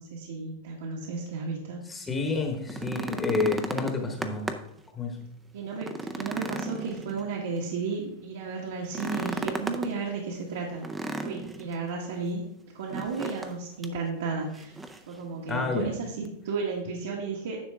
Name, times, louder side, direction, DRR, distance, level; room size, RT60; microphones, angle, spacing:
voice 1, 0.0-1.8 5.5-10.9 11.2-12.4 12.7-14.8 15.1-17.6, right 4 dB, 75° right, -3 dB, 1.7 m, -33 dB
voice 2, 1.9-4.5 4.9-5.2 15.5-15.9, left 3 dB, 10° left, 3 dB, 1.1 m, -29 dB
sound 1, 2.5-4.8 5.2-5.3 5.7-7.6 8.8-9.9 10.8-11.7 12.9-13.5 13.8-14.0 14.5-15.1 16.2-16.3, right 2 dB, 10° right, 0.5 m, -34 dB
10.0 x 6.5 x 3.6 m, 0.73 s
supercardioid pair, 165°, 0 cm